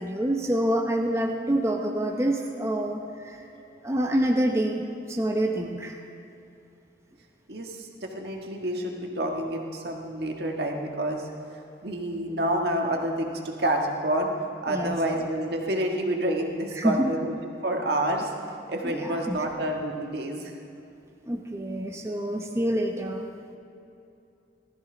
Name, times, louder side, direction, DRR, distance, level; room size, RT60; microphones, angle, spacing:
voice 1, 0.0-3.4 3.8-6.0 14.7-15.0 16.8-17.2 18.8-19.4 21.3-23.3, right 1 dB, 15° right, 2 dB, 0.9 m, -27 dB
voice 2, 7.5-11.3 11.8-14.3 14.6-17.3 17.6-18.3 18.7-20.5, right 1 dB, 60° right, 1 dB, 1.7 m, -28 dB
19.0 x 14.0 x 3.9 m, 2.7 s
head